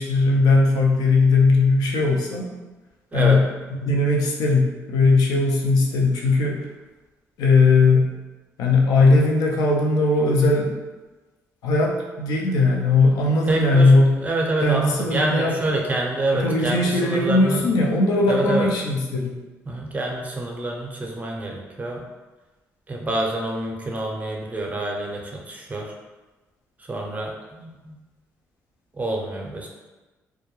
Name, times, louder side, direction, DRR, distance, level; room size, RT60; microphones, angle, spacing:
voice 1, 0.0-2.5 3.1-3.4 3.8-6.6 7.4-8.1 8.6-10.7 11.6-14.1 14.6-15.5 16.3-19.3, left 3 dB, 80° left, 0 dB, 0.5 m, -19 dB
voice 2, 13.4-17.7 18.3-18.7 19.7-22.0 22.9-25.9 26.8-28.0 28.9-29.7, right 2 dB, 25° right, -1 dB, 0.6 m, -27 dB
2.2 x 2.1 x 2.9 m, 1.2 s
supercardioid pair, 70°, 6 cm